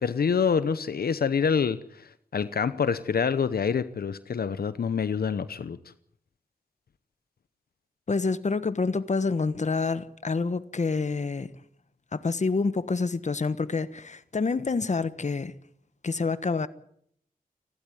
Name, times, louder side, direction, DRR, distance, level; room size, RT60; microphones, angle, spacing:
voice 1, 0.0-5.8, left 6 dB, 80° left, 0.9 m, -26 dB
voice 2, 8.1-11.5 12.1-15.5 16.0-16.7, left 4 dB, 50° left, 1.3 m, -27 dB
29.5 x 12.0 x 9.5 m
wide cardioid pair, 80°, 16 cm